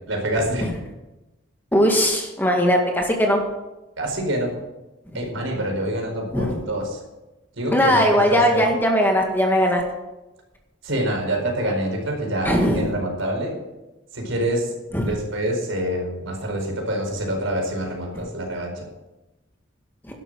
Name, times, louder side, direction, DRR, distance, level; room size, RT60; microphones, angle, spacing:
voice 1, 0.1-0.6 4.0-4.5 5.1-7.0 7.6-8.6 10.8-13.6 14.1-14.7 15.0-18.9, right 1 dB, 80° right, 1 dB, 4.7 m, -26 dB
voice 2, 1.7-3.4 6.3-6.6 7.7-9.8 12.4-12.9 14.9-15.1, equal, 10° left, 1 dB, 2.0 m, -19 dB
12.0 x 11.5 x 6.3 m, 1.0 s
head